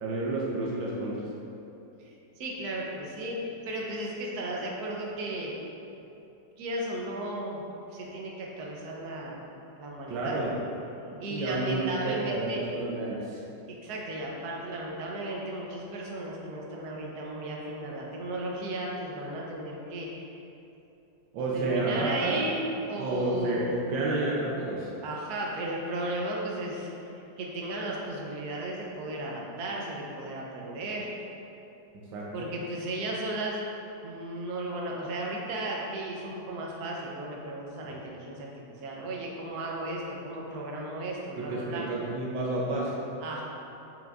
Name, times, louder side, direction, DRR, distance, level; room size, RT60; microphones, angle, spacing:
voice 1, 0.0-1.2 10.1-10.6 11.1-13.4 21.3-22.4 23.0-24.9 32.1-32.2 41.4-43.0, right 2 dB, 85° right, -4 dB, 1.5 m, -30 dB
voice 2, 2.0-5.6 6.6-7.6 7.9-9.5 9.8-10.4 11.2-12.6 13.7-20.3 21.3-23.7 25.0-31.1 32.3-33.6 34.0-38.5 38.8-41.8 43.2-43.4, right 1 dB, 60° right, -2 dB, 1.3 m, -35 dB
7.2 x 5.9 x 2.5 m, 2.8 s
omnidirectional pair, 2.0 m